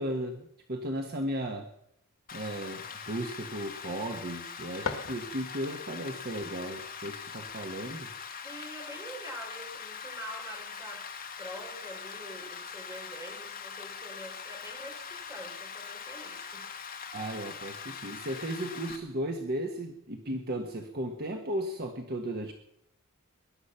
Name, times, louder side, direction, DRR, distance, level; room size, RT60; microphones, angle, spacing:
voice 1, 0.0-1.7 2.3-8.1 17.1-22.5, right 1 dB, 50° right, 4 dB, 1.4 m, -35 dB
Rain, 2.3-19.0, left 6 dB, 45° left, 1.9 m, -42 dB
sound 1, 4.7-5.8, left 4 dB, 75° left, 1.9 m, -39 dB
voice 2, 8.4-11.1 11.4-16.7, equal, 15° right, 1 dB, 4.5 m, -45 dB
20.0 x 11.5 x 5.8 m, 0.74 s
head